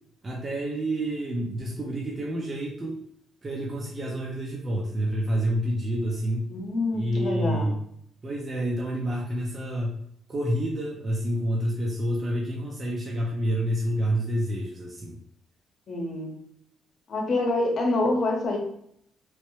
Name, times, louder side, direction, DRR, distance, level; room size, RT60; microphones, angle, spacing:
voice 1, 0.2-3.0 3.4-6.5 6.9-7.7 8.2-15.1, equal, 30° right, -2 dB, 0.6 m, -28 dB
voice 2, 6.5-7.7 15.9-16.3 17.1-18.6, left 2 dB, 50° left, 0 dB, 0.9 m, -26 dB
3.0 x 2.2 x 3.1 m, 0.70 s
cardioid pair, 90°, 0 cm